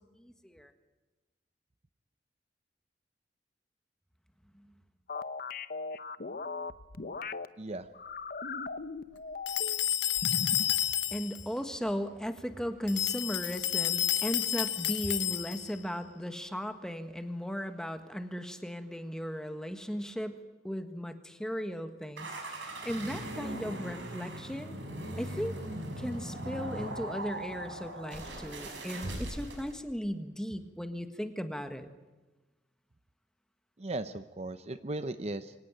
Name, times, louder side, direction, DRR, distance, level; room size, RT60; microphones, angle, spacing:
voice 1, 0.2-0.7 4.5-4.7 11.1-24.8 25.2-25.5 26.0-31.9, equal, 5° left, 8 dB, 1.6 m, -37 dB
sound 1, 5.1-7.5 7.9-9.8 10.2-10.7, left 4 dB, 50° left, 0.8 m, -38 dB
sound 2, 9.5-11.4 12.9-15.8, left 12 dB, 85° left, 1.2 m, -30 dB
sound 3, 22.2-29.7, right 1 dB, 85° right, 6.1 m, -39 dB
voice 2, 33.8-35.5, right 2 dB, 35° right, 11 dB, 0.7 m, -37 dB
24.5 x 18.0 x 9.0 m, 1.2 s
head